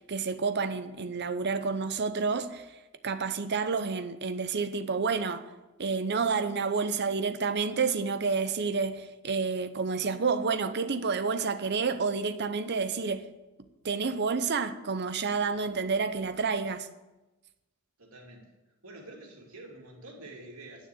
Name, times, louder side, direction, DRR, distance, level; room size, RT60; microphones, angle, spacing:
voice 1, 0.1-2.7 3.0-5.4 5.8-13.3 13.6-16.9, right 4 dB, 55° right, 0.8 m, -29 dB
voice 2, 18.0-18.5 18.8-20.9, right 2 dB, 85° right, 2.6 m, -47 dB
9.7 x 6.6 x 8.6 m
head